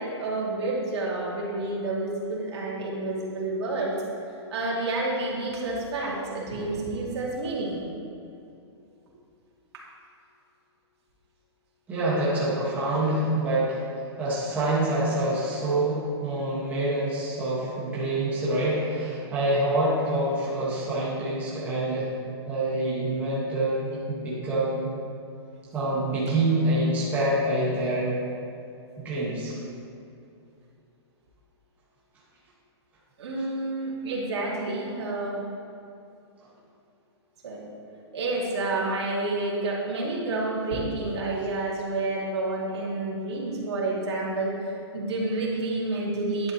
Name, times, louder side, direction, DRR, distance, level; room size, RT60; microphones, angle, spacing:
voice 1, 0.0-4.0 4.5-7.9 9.7-9.8 33.2-35.4 37.4-37.7 38.1-46.5, right 2 dB, 70° right, -5 dB, 2.4 m, -29 dB
voice 2, 11.9-13.8 14.2-22.1 22.5-24.9 25.7-28.1 29.0-29.6, right 1 dB, 10° right, -9 dB, 1.7 m, -26 dB
10.5 x 9.2 x 3.1 m, 2.6 s
hypercardioid pair, 175°, 15 cm